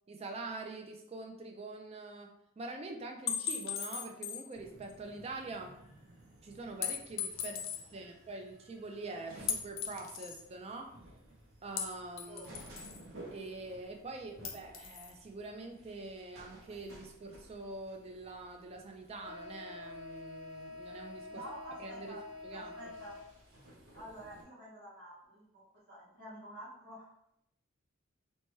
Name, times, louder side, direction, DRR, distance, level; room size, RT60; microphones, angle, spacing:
voice 1, 0.1-5.8 6.4-7.6 7.9-11.0 11.6-12.5 13.3-21.4 21.8-22.2 22.4-22.9, right 2 dB, 30° right, 3 dB, 0.3 m, -45 dB
sound 1, 3.3-4.5 4.9-5.0 6.8-7.8 9.5-10.4 11.8-13.1 14.4-15.1, left 8 dB, 60° left, 0.4 m, -37 dB
sound 2, 4.5-24.4, left 1 dB, 80° right, 0.7 m, -52 dB
voice 2, 12.3-12.7 21.3-22.2 22.5-23.1 23.9-25.6 25.9-27.1, right 1 dB, 50° right, -8 dB, 1.3 m, -49 dB
2.9 x 2.2 x 3.0 m, 0.76 s
head